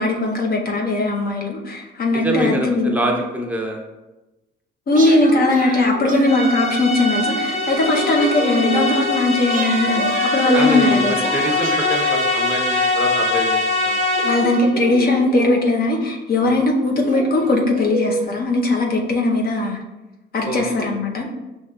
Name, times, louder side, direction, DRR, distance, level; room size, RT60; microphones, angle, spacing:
voice 1, 0.0-3.0 4.9-11.2 14.2-19.8 20.3-21.3, left 2 dB, 50° left, 0 dB, 0.8 m, -19 dB
voice 2, 2.1-3.8 10.5-14.0 16.4-16.6 20.4-21.0, right 1 dB, 5° right, 0 dB, 0.8 m, -25 dB
sound 1, 4.9-6.9 7.2-9.1 9.5-13.4 14.1-15.9 16.5-16.6 17.0-18.3, right 2 dB, 45° right, 0.6 m, -29 dB
sound 2, 6.3-14.7, left 2 dB, 35° left, 1.1 m, -22 dB
6.1 x 2.7 x 2.4 m, 1.0 s
cardioid pair, 90°, 20 cm